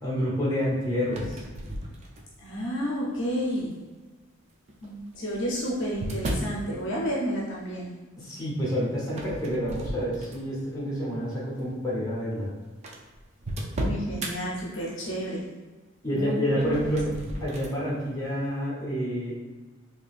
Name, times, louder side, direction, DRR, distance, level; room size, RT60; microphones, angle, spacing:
voice 1, 0.0-1.4 8.2-12.5 16.0-17.1 17.4-19.4, equal, 15° left, -8 dB, 1.3 m, -28 dB
sound 1, 1.0-2.5 3.2-3.6 4.7-6.6 9.1-10.6 11.1-11.4 12.1-12.2 12.4-12.5 12.8-14.3 16.5-17.8, right 1 dB, 35° right, 0.4 m, -35 dB
voice 2, 2.4-3.8 4.8-7.9 13.8-15.5 16.1-16.4 16.8-17.0, equal, 60° left, -4 dB, 0.7 m, -31 dB
4.2 x 2.8 x 2.5 m, 1.3 s
head